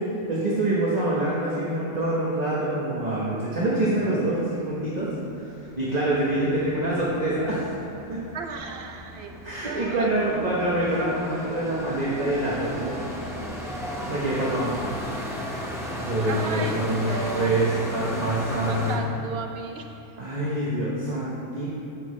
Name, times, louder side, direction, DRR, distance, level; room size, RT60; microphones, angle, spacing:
voice 1, 0.3-5.1 5.3-5.5 5.8-7.7 8.1-8.2 9.4-12.9 14.1-14.7 16.0-19.0 20.2-21.6, right 1 dB, 35° right, -7 dB, 1.2 m, -25 dB
sound 1, 4.7-4.8 5.1-19.0, equal, ahead, 0.9 m, -35 dB
voice 2, 8.3-10.1 16.3-17.9 18.1-18.3 18.7-19.9, right 4 dB, 60° right, 4 dB, 0.9 m, -35 dB
12.5 x 6.0 x 3.2 m, 3.0 s
omnidirectional pair, 1.3 m